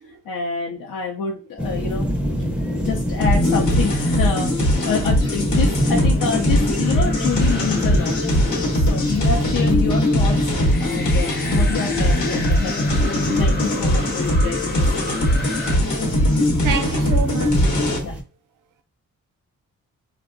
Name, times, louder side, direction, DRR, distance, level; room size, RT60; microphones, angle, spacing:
voice 1, 0.1-2.4 2.8-8.2 8.7-10.5 10.8-15.0 18.0-18.2, left 6 dB, 85° left, 0.5 m, -27 dB
sound 1, 1.6-18.2, equal, 5° right, 0.5 m, -27 dB
sound 2, 3.2-18.0, left 1 dB, 65° left, 0.8 m, -20 dB
sound 3, 6.8-9.3 10.5-15.8, left 2 dB, 30° left, 0.7 m, -34 dB
voice 2, 16.6-17.8, right 6 dB, 80° right, 0.5 m, -28 dB
3.5 x 2.1 x 2.4 m
cardioid pair, 90°, 31 cm